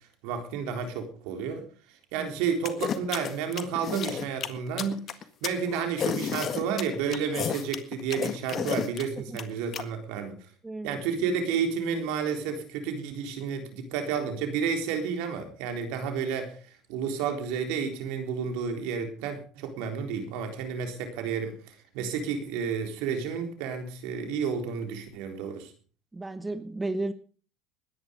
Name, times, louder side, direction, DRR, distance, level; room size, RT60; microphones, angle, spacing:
voice 1, 0.2-1.7 2.1-5.1 5.4-10.4 10.8-16.6 16.9-25.7, right 6 dB, 70° right, 6 dB, 3.8 m, -31 dB
sound 1, 2.7-9.8, left 8 dB, 45° left, 1.7 m, -31 dB
voice 2, 10.6-11.0 26.1-27.1, right 2 dB, 15° right, 11 dB, 1.2 m, -33 dB
20.5 x 10.5 x 5.2 m, 0.41 s
supercardioid pair, 90°, 0 cm